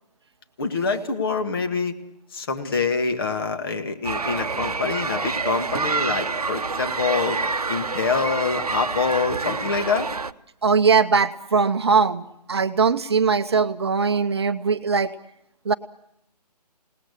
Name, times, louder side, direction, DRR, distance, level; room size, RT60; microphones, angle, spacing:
voice 1, 0.6-1.9 2.3-7.4 7.7-10.1, left 5 dB, 35° left, 7 dB, 2.1 m, -25 dB
sound 1, 4.0-10.3, right 4 dB, 65° right, 0.9 m, -27 dB
voice 2, 10.6-15.1 15.6-15.7, right 5 dB, 40° right, 11 dB, 0.9 m, -20 dB
28.0 x 19.5 x 8.4 m, 0.82 s
figure-of-eight pair, 145°, 21 cm